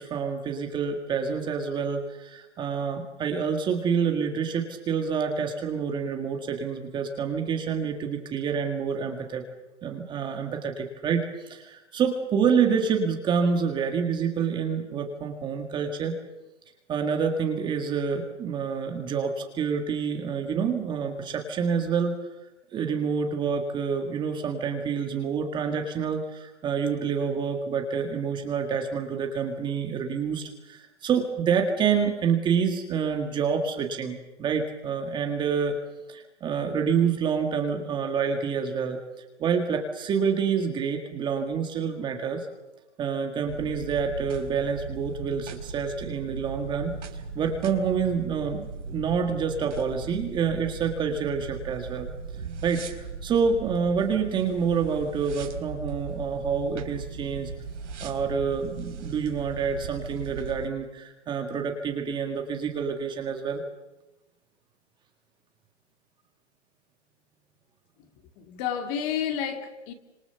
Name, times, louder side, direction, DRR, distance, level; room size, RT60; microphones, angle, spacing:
voice 1, 0.0-9.4 9.8-16.1 16.9-22.1 22.7-35.8 36.1-39.0 39.4-42.5 43.0-48.7 48.9-52.1 52.6-57.5 58.0-63.6, right 6 dB, 15° right, 3 dB, 1.9 m, -27 dB
sound 1, 43.5-60.7, right 4 dB, 75° right, 4.4 m, -38 dB
voice 2, 68.4-69.9, left 8 dB, 25° left, 6 dB, 2.5 m, -30 dB
29.5 x 26.5 x 6.9 m, 1.0 s
hypercardioid pair, 160°, 36 cm